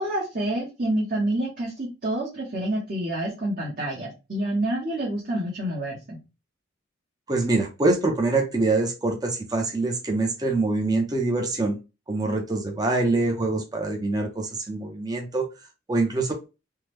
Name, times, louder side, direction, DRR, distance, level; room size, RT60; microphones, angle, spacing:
voice 1, 0.0-6.2, right 1 dB, 45° right, -4 dB, 1.0 m, -28 dB
voice 2, 7.3-11.8 12.1-15.5 15.9-16.3, right 2 dB, 20° right, 2 dB, 0.6 m, -24 dB
3.5 x 2.1 x 3.0 m, 0.28 s
head